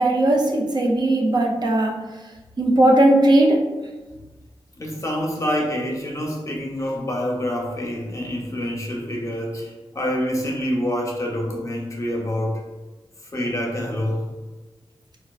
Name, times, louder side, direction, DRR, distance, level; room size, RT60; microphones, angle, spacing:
voice 1, 0.0-1.9 2.6-3.6, right 1 dB, 45° right, 0 dB, 0.5 m, -17 dB
voice 2, 4.8-12.6 13.3-14.3, equal, 35° left, -1 dB, 0.6 m, -26 dB
4.3 x 2.3 x 2.3 m, 1.2 s
wide cardioid pair, 105°, 10 cm